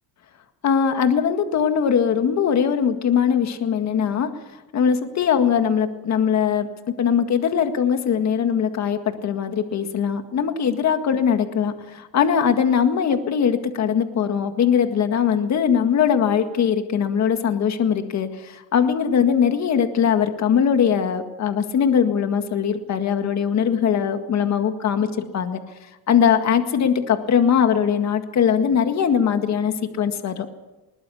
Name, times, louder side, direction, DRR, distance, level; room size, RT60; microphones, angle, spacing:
voice 1, 0.6-4.3 4.7-25.6 26.1-30.5, left 7 dB, 45° left, 7 dB, 1.9 m, -21 dB
21.0 x 20.0 x 7.1 m, 1.0 s
cardioid pair, 145°, 40 cm